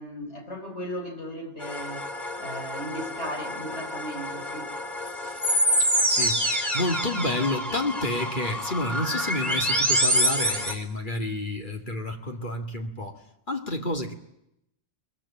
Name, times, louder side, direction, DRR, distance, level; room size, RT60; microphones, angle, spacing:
voice 1, 0.0-2.1 2.4-4.8, equal, 75° left, 3 dB, 5.8 m, -36 dB
sound 1, 1.6-10.7, equal, ahead, 3.7 m, -27 dB
voice 2, 5.8-13.2 13.5-14.1, left 1 dB, 45° left, 4 dB, 2.3 m, -30 dB
23.5 x 21.5 x 8.8 m, 0.80 s
omnidirectional pair, 1.2 m